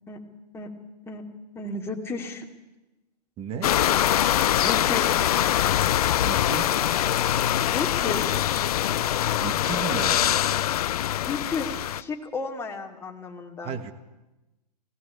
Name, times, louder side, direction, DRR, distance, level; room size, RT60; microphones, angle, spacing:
voice 1, 1.5-2.5 4.6-5.3 7.7-8.5 11.3-13.9, left 3 dB, 10° left, 1 dB, 2.5 m, -33 dB
voice 2, 3.4-3.8 6.2-6.7 9.4-10.4 13.6-13.9, right 7 dB, 30° right, 9 dB, 1.5 m, -34 dB
sound 1, 3.6-12.0, left 11 dB, 60° left, 0.7 m, -23 dB
18.0 x 17.5 x 8.6 m, 1.0 s
hypercardioid pair, 120°, 21 cm